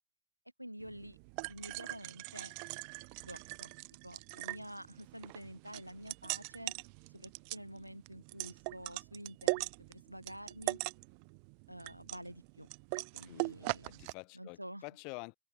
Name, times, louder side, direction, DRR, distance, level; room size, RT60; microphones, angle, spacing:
voice 1, 0.6-1.2 1.5-2.5 3.2-3.7 4.0-6.7 7.1-10.8 11.7-12.7 13.0-14.0 14.3-14.8, equal, 90° right, 0.8 m, -49 dB
sound 1, 0.8-14.1, right 40 dB or more, 45° right, 0.7 m, -41 dB
voice 2, 13.3-14.6 14.8-15.4, left 35 dB, 45° left, 0.8 m, -48 dB
open air
figure-of-eight pair, 90°, 0 cm